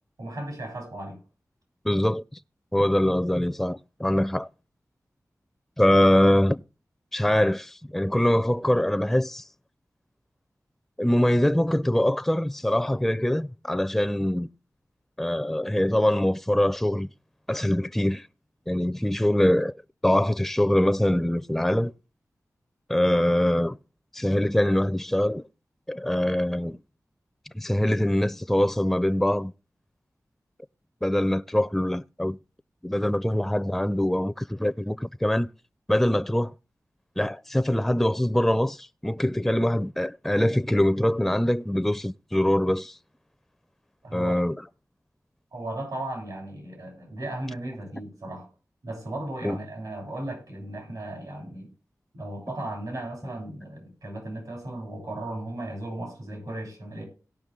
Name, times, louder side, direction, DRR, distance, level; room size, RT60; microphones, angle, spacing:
voice 1, 0.2-1.2 23.1-23.2 44.0-44.4 45.5-48.5 48.8-51.7 52.1-57.0, right 1 dB, 90° right, 7.4 m, -36 dB
voice 2, 1.8-2.4 2.7-4.5 5.8-6.6 7.1-9.5 11.0-14.5 15.2-17.1 17.5-18.3 18.7-19.7 20.0-21.9 22.9-23.8 24.1-25.4 25.9-26.8 27.5-29.5 31.0-32.4 32.8-35.5 35.9-36.5 37.2-43.0 44.1-44.5 49.4-49.6, left 1 dB, 5° left, 0.4 m, -23 dB
17.5 x 5.9 x 3.6 m
wide cardioid pair, 80°, 6 cm